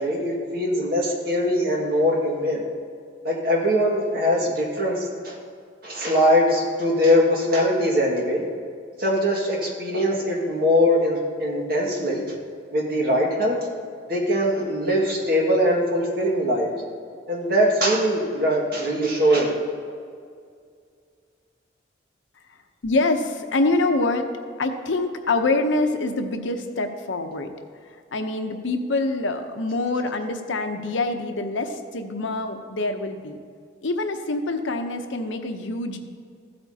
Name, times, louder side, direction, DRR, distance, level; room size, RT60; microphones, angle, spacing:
voice 1, 0.0-2.6 3.2-5.4 5.8-8.4 9.0-12.2 12.7-13.7 14.1-16.7 17.3-19.5, equal, 50° right, -2 dB, 1.9 m, -22 dB
voice 2, 22.8-24.3 24.6-27.5 28.1-33.4 33.8-36.0, left 2 dB, 80° left, 6 dB, 0.8 m, -25 dB
15.0 x 8.6 x 2.8 m, 2.2 s
head